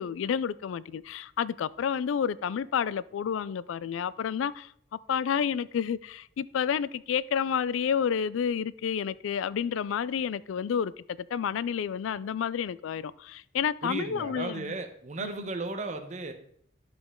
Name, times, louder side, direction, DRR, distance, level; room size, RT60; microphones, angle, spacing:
voice 1, 0.0-4.7 5.1-10.9 11.2-14.7 15.2-15.5, left 7 dB, 85° left, 0.3 m, -30 dB
voice 2, 13.8-16.3, right 2 dB, 35° right, 0.9 m, -35 dB
11.5 x 5.2 x 3.6 m
head